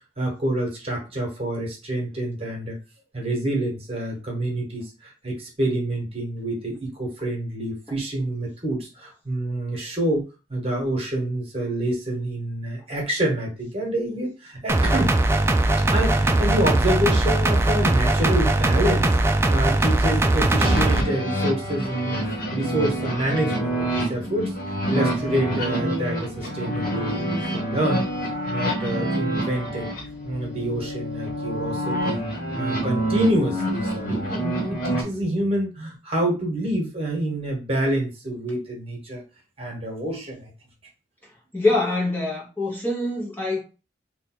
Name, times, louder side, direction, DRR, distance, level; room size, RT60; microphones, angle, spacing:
voice 1, 0.2-2.8 3.1-10.2 10.5-15.1 15.9-22.2 22.5-24.5 24.9-29.9 30.2-32.2 32.6-39.2 39.6-40.5, right 1 dB, 35° right, 1.2 m, -27 dB
sound 1, 14.7-21.0, right 2 dB, 15° right, 0.3 m, -20 dB
sound 2, 20.6-35.0, right 1 dB, 50° left, 1.1 m, -27 dB
voice 2, 41.5-43.6, left 2 dB, 10° left, 0.9 m, -24 dB
3.3 x 2.2 x 4.3 m
head